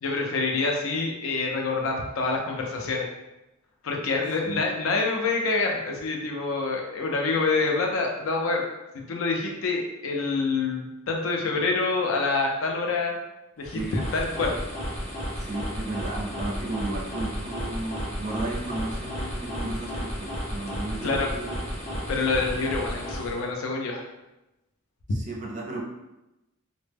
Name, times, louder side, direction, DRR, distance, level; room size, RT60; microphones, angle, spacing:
voice 1, 0.0-3.1 3.8-8.6 8.9-13.2 13.6-14.5 21.0-21.3 22.1-24.0, left 3 dB, 70° left, 1 dB, 0.5 m, -26 dB
sound 1, 13.6-23.5, equal, 30° left, 0.7 m, -33 dB
voice 2, 15.4-21.6 21.9-22.0 25.1-25.8, right 2 dB, 35° right, -2 dB, 0.4 m, -34 dB
2.0 x 2.0 x 3.3 m, 0.97 s
head